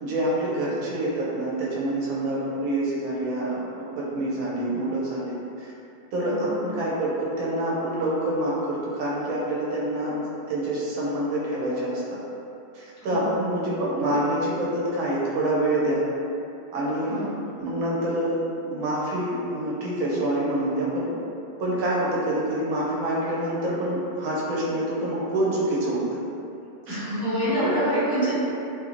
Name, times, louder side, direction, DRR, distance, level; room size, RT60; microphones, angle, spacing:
voice 1, 0.0-5.7 6.1-10.1 10.5-12.2 12.7-16.0 16.7-17.2 17.6-21.1 21.6-26.0 26.9-27.0 27.6-27.7, right 1 dB, 70° right, -6 dB, 1.0 m, -26 dB
voice 2, 6.2-6.5 13.0-13.4 17.1-17.3 26.9-28.3, right 1 dB, 10° right, -16 dB, 1.2 m, -26 dB
3.0 x 2.6 x 2.5 m, 2.7 s
omnidirectional pair, 1.6 m